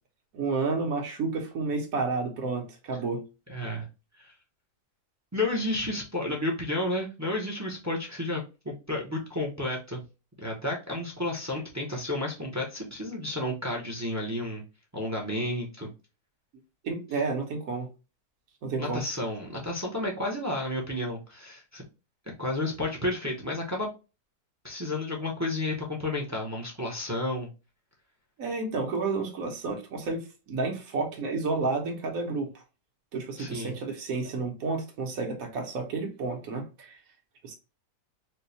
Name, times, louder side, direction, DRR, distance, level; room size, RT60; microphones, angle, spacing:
voice 1, 0.3-3.2 16.8-17.9 18.6-19.0 28.4-32.5 33.1-37.0 37.4-37.5, right 4 dB, 60° right, 1.3 m, -31 dB
voice 2, 3.5-3.8 4.2-4.3 5.3-10.0 10.4-14.6 14.9-15.9 18.8-21.8 22.4-23.9 24.6-27.5 33.4-33.8, left 1 dB, 25° right, 0.3 m, -31 dB
4.5 x 2.2 x 2.7 m
omnidirectional pair, 1.8 m